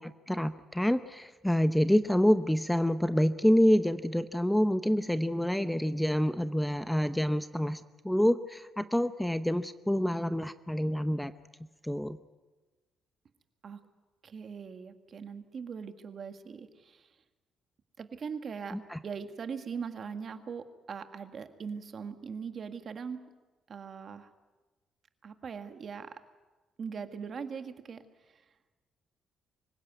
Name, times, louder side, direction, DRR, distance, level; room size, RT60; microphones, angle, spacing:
voice 1, 0.0-11.3 11.8-12.2 18.7-19.0, equal, 5° left, 12 dB, 0.7 m, -27 dB
voice 2, 14.2-17.1 18.0-18.8 19.0-23.2 23.7-24.3 25.2-26.2 26.8-28.0 28.3-28.4, right 6 dB, 50° right, 8 dB, 1.8 m, -40 dB
25.0 x 16.5 x 9.3 m, 1.2 s
cardioid pair, 90°, 0 cm